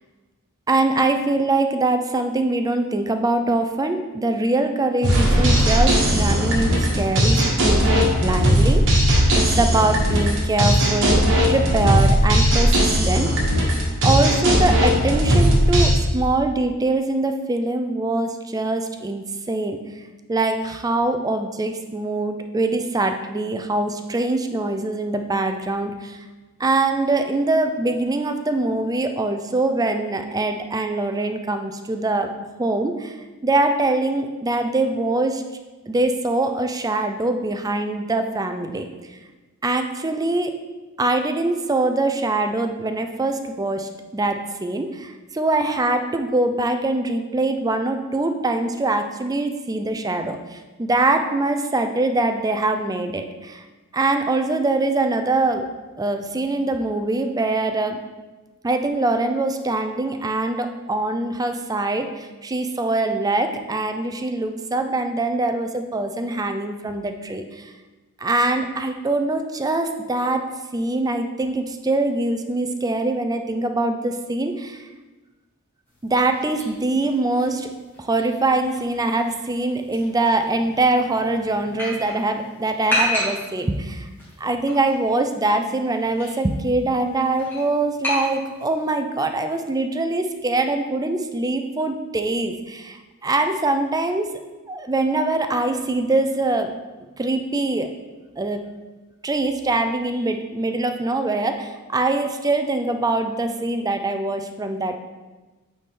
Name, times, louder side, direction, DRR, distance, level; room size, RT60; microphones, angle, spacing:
voice 1, 0.7-8.8 9.3-11.2 11.5-13.3 14.0-19.8 20.3-26.2 26.6-32.3 32.6-33.2 33.4-35.4 35.9-38.9 39.6-40.5 41.0-53.6 53.9-55.7 56.0-58.0 58.6-67.7 68.2-70.4 70.7-74.9 76.0-77.7 78.0-84.1 84.4-94.3 94.7-96.8 97.2-97.9 98.4-98.6 99.2-105.0, right 2 dB, 15° right, 6 dB, 0.4 m, -23 dB
sound 1, 5.0-15.9, equal, 60° right, 1.5 m, -18 dB
sound 2, 75.9-88.9, left 1 dB, 10° left, 1.8 m, -33 dB
8.2 x 4.2 x 3.8 m, 1.2 s
head